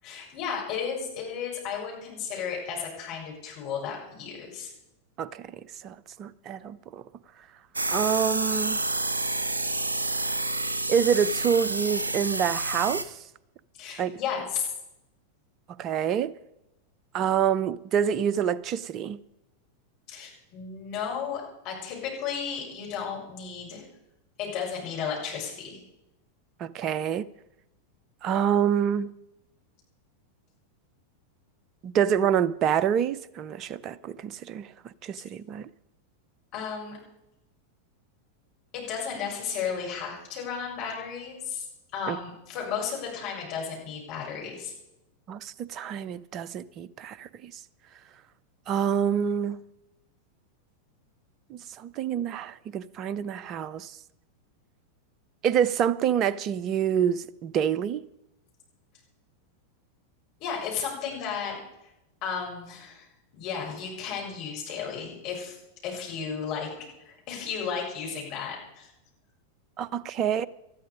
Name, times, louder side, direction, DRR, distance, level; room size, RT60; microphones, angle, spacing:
voice 1, 0.0-4.7 13.8-14.7 20.1-23.8 24.4-25.8 36.5-37.0 38.7-41.7 41.9-44.7 60.4-61.6 62.2-63.1 63.3-65.6 65.8-68.9, left 7 dB, 40° left, 7.2 m, -34 dB
voice 2, 5.8-7.0 7.9-8.8 10.9-13.1 14.0-14.1 15.8-16.3 17.1-19.2 26.6-27.3 28.2-29.1 31.8-34.7 35.0-35.7 42.1-42.2 45.3-47.5 48.7-49.6 51.5-54.0 55.4-58.1 69.8-70.5, right 8 dB, 35° right, 0.6 m, -27 dB
sound 1, 7.8-13.0, right 2 dB, 75° right, 1.3 m, -29 dB
19.5 x 13.5 x 5.1 m
figure-of-eight pair, 90°, 0 cm